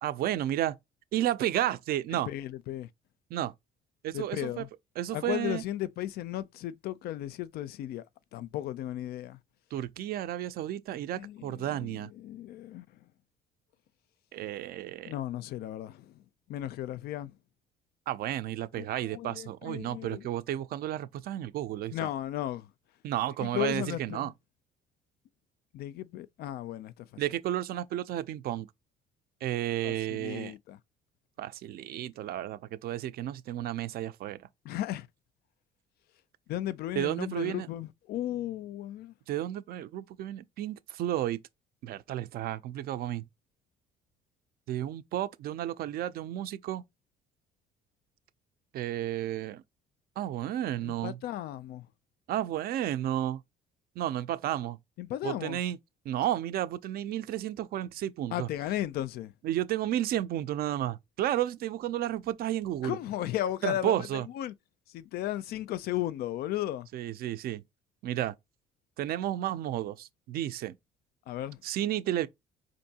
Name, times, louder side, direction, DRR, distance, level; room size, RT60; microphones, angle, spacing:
voice 1, 0.0-0.8 1.1-2.3 3.3-3.5 4.0-4.7 5.0-5.6 9.7-12.1 14.3-15.1 18.1-21.9 23.0-24.3 27.2-28.7 29.4-30.5 31.4-34.5 37.0-37.7 39.3-41.4 41.8-43.2 44.7-46.8 48.7-49.6 50.2-51.2 52.3-53.4 54.0-54.8 55.2-55.8 56.1-58.5 59.4-63.0 63.6-64.3 66.9-67.6 68.0-68.3 69.0-70.8 71.6-72.3, right 12 dB, 65° right, 0.4 m, -32 dB
voice 2, 2.3-2.9 4.1-4.7 5.1-8.0 8.3-9.4 11.1-12.9 15.1-16.2 16.5-17.3 18.8-20.3 21.9-22.7 23.4-24.3 25.7-27.2 29.8-30.8 34.6-35.1 36.5-39.1 50.8-51.9 55.0-55.6 58.3-59.3 62.8-64.5 64.9-66.9 71.3-71.6, left 13 dB, 65° left, 0.4 m, -35 dB
4.4 x 2.5 x 2.8 m
cardioid pair, 110°, 17 cm